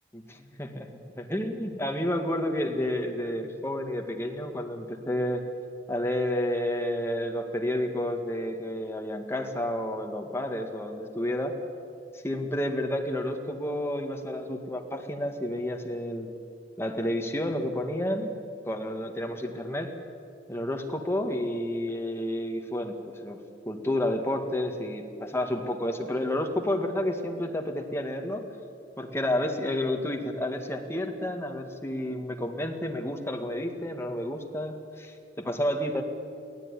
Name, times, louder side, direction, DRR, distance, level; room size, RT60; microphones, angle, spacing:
voice 1, 0.1-0.9 1.2-5.4 5.9-11.5 12.2-16.3 16.8-18.3 18.7-19.9 20.5-28.4 29.0-36.0, left 1 dB, 15° left, 3 dB, 2.0 m, -30 dB
23.5 x 16.5 x 10.0 m, 2.4 s
head